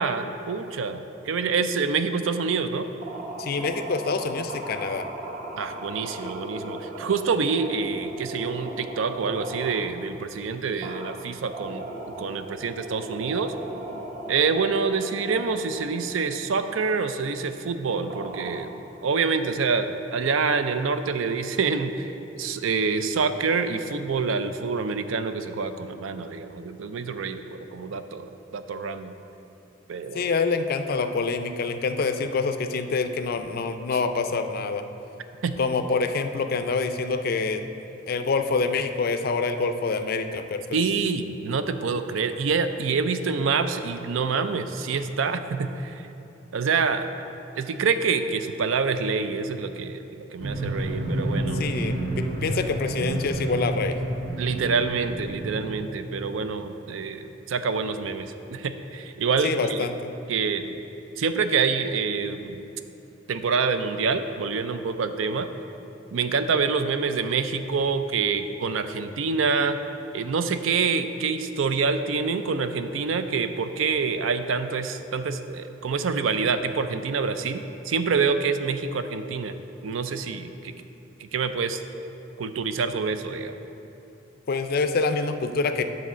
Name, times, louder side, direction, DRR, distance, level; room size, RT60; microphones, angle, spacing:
voice 1, 0.0-2.9 5.6-11.8 12.2-13.5 14.3-18.7 19.0-29.1 29.9-30.3 35.4-35.6 40.7-46.1 46.5-47.1 47.6-51.6 54.4-60.0 60.3-60.8 61.2-62.6 63.3-65.5 66.1-69.8 70.1-79.6 79.8-80.7 81.2-81.8 82.4-83.6, right 5 dB, 75° right, 9 dB, 0.4 m, -26 dB
sound 1, 3.0-9.9 10.8-16.4 16.9-17.2 18.1-19.0, right 2 dB, 40° right, 0.7 m, -38 dB
voice 2, 3.4-5.1 30.1-34.8 35.6-37.7 38.1-40.6 51.6-54.0 59.4-60.1 84.5-85.8, left 4 dB, 50° left, 8 dB, 0.4 m, -26 dB
sound 2, 50.4-55.8, right 1 dB, 60° right, 1.0 m, -29 dB
9.6 x 4.0 x 6.2 m, 2.8 s
head